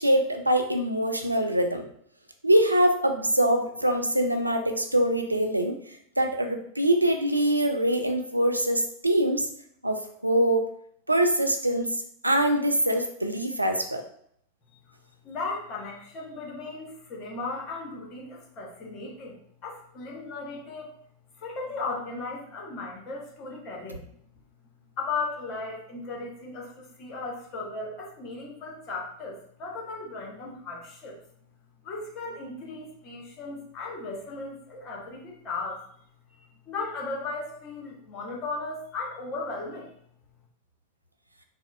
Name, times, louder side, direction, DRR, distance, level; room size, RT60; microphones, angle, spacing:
voice 1, 0.0-1.8 2.4-5.8 6.2-9.5 9.8-10.7 11.1-14.0, right 1 dB, 85° right, 4 dB, 0.3 m, -24 dB
voice 2, 15.2-19.4 19.6-20.9 21.4-24.1 25.0-31.2 31.8-35.8 36.7-39.9, left 3 dB, 35° left, -2 dB, 1.0 m, -36 dB
4.1 x 2.1 x 2.3 m, 0.66 s
figure-of-eight pair, 90°, 0 cm